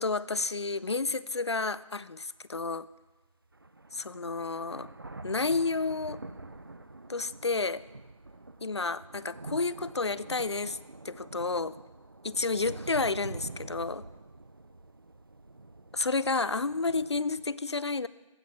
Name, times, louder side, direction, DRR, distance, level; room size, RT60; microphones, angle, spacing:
voice 1, 0.0-2.9 3.9-4.9 5.2-6.2 7.1-7.8 8.6-10.8 11.0-11.7 12.2-14.0 15.9-18.1, left 3 dB, 55° left, 18 dB, 0.4 m, -30 dB
sound 1, 1.0-1.1 1.7-1.8 3.1-3.2 3.5-17.5, right 2 dB, 40° right, 0.5 m, -46 dB
15.0 x 5.8 x 8.6 m, 1.1 s
figure-of-eight pair, 180°, 17 cm